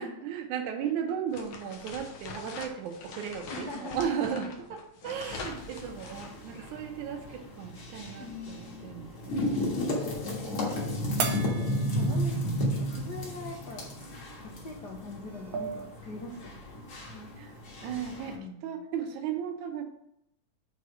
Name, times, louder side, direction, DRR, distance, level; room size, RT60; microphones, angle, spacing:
voice 1, 0.0-9.6 11.7-11.9 17.4-19.8, right 8 dB, 90° right, 4 dB, 2.2 m, -36 dB
sound 1, 1.3-6.8, left 5 dB, 65° left, 1.8 m, -44 dB
voice 2, 3.5-4.1 8.2-8.9 11.9-12.4 12.7-13.9 14.4-16.8 17.1-17.3 18.3-18.8, left 2 dB, 85° left, -1 dB, 0.9 m, -42 dB
sound 2, 5.1-18.4, equal, 50° left, 2.2 m, -34 dB
sound 3, 11.2-12.8 13.2-13.3 14.8-14.9 15.3-15.9, right 5 dB, 70° right, 1.2 m, -36 dB
6.4 x 4.2 x 6.2 m, 0.77 s
omnidirectional pair, 3.3 m